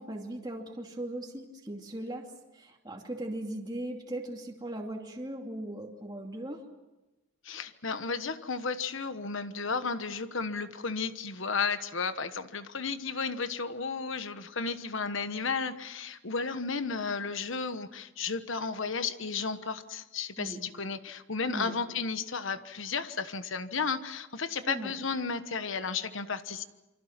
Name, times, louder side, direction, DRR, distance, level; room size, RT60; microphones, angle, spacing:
voice 1, 0.0-2.3 2.5-6.6 20.4-20.6 21.5-21.7 24.7-24.9, right 1 dB, 20° right, 1 dB, 2.5 m, -38 dB
voice 2, 7.4-26.6, left 5 dB, 60° left, 11 dB, 1.2 m, -33 dB
28.0 x 25.5 x 5.9 m, 1.0 s
head